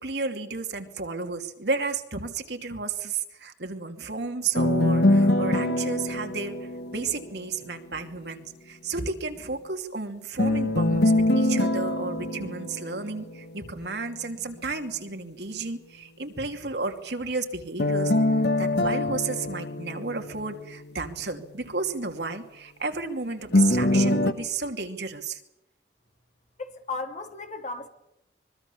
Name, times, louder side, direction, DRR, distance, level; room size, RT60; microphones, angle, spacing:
voice 1, 0.0-25.4, right 4 dB, 70° right, 2.6 m, -32 dB
sound 1, 4.6-7.6 10.4-13.6 17.8-20.9 23.5-24.3, left 1 dB, 70° left, 1.5 m, -24 dB
voice 2, 26.6-27.9, left 3 dB, 40° left, 3.0 m, -35 dB
24.5 x 23.0 x 7.1 m
head